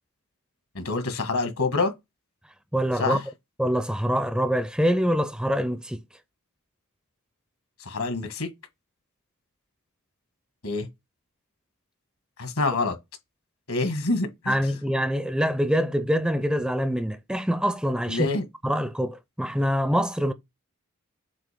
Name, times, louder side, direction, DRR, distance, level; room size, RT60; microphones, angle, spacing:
voice 1, 0.8-1.9 3.0-3.2 7.9-8.5 10.6-10.9 12.4-13.0 13.7-14.5 18.1-18.4, left 3 dB, 75° left, 1.8 m, -26 dB
voice 2, 2.7-3.2 3.6-6.0 14.5-18.3 18.6-20.3, equal, 5° right, 0.5 m, -25 dB
7.6 x 2.8 x 5.1 m
head